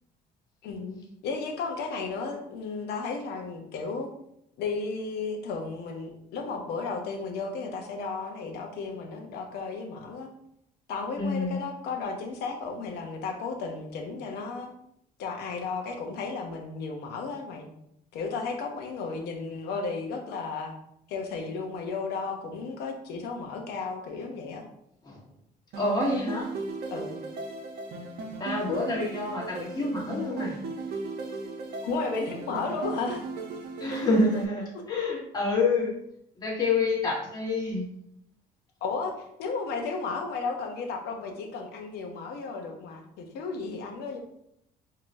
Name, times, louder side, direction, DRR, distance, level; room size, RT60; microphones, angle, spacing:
voice 1, 0.6-4.1 4.6-10.3 10.9-14.7 15.2-17.7 18.1-20.7 21.1-24.6 26.9-27.2 31.8-33.2 38.8-39.1 39.4-44.2, left 4 dB, 75° left, 3 dB, 0.8 m, -34 dB
voice 2, 11.2-11.6 25.0-25.2 25.8-26.5 28.4-30.6 33.8-35.9 36.4-37.9, left 3 dB, 25° left, -3 dB, 1.3 m, -27 dB
sound 1, 25.7-34.4, right 3 dB, 70° right, 0.8 m, -37 dB
4.6 x 2.9 x 2.6 m, 0.74 s
cardioid pair, 110°, 17 cm